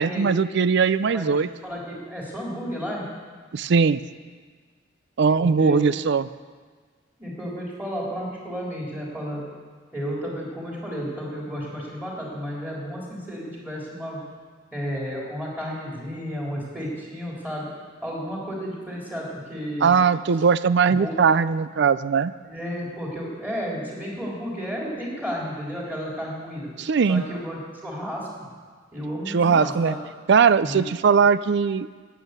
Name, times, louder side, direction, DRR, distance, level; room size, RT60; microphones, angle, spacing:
voice 1, 0.0-1.5 3.5-4.0 5.2-6.3 19.8-22.3 26.8-27.2 29.3-29.9 30.3-31.9, right 5 dB, 60° right, 15 dB, 0.4 m, -20 dB
voice 2, 1.0-3.1 5.4-5.9 7.2-9.4 9.9-14.2 14.7-17.7 18.0-20.0 20.8-21.2 22.4-26.7 27.1-28.5 28.9-30.0 30.6-30.9, equal, 10° right, -5 dB, 3.8 m, -32 dB
12.0 x 9.2 x 8.2 m, 1.5 s
head